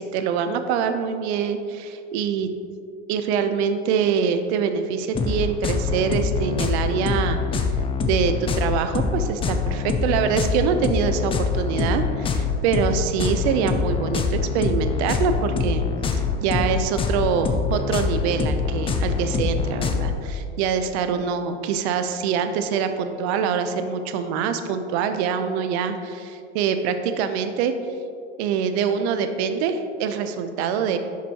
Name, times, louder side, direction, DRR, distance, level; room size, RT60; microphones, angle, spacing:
voice 1, 0.0-2.5 3.1-7.4 8.1-15.8 16.1-27.7 28.4-31.0, right 6 dB, 60° right, 8 dB, 0.6 m, -24 dB
sound 1, 5.1-20.2, left 5 dB, 15° left, 0.4 m, -24 dB
6.3 x 5.9 x 2.9 m, 2.3 s
hypercardioid pair, 95°, 37 cm